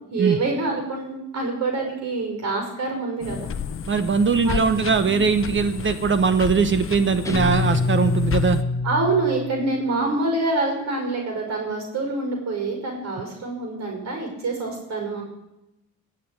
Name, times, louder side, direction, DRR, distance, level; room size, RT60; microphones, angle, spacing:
voice 1, 0.1-3.5 4.4-4.6 5.0-5.2 8.8-15.2, right 3 dB, 65° right, 2 dB, 5.7 m, -26 dB
sound 1, 3.2-8.6, left 7 dB, 45° left, 0.9 m, -31 dB
voice 2, 3.9-8.6, right 5 dB, 40° right, 11 dB, 1.1 m, -21 dB
Guitar, 7.2-9.8, left 3 dB, 10° left, 1.5 m, -25 dB
19.0 x 6.8 x 8.8 m, 0.90 s
cardioid pair, 90°, 30 cm